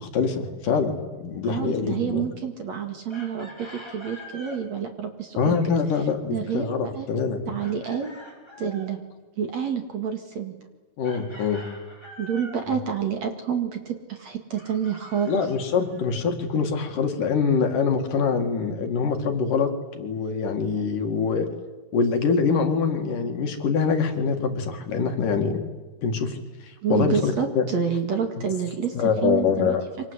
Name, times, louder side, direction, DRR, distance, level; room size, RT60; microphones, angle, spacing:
voice 1, 0.0-2.3 5.4-7.4 11.0-11.6 15.3-21.5 21.9-25.6 26.0-26.4 26.6-27.7 28.4-28.5 28.9-29.8, left 5 dB, 60° left, 5 dB, 3.4 m, -24 dB
voice 2, 1.4-5.7 6.3-7.1 7.5-8.1 8.6-9.0 9.4-10.5 12.2-15.5 26.8-28.9 29.2-29.8, right 7 dB, 50° right, 5 dB, 2.9 m, -28 dB
Chicken rooster, 3.1-4.6 7.6-8.9 11.0-12.7 14.6-16.1, left 1 dB, 5° left, 6.2 m, -44 dB
28.0 x 25.0 x 8.2 m, 1.2 s
omnidirectional pair, 4.5 m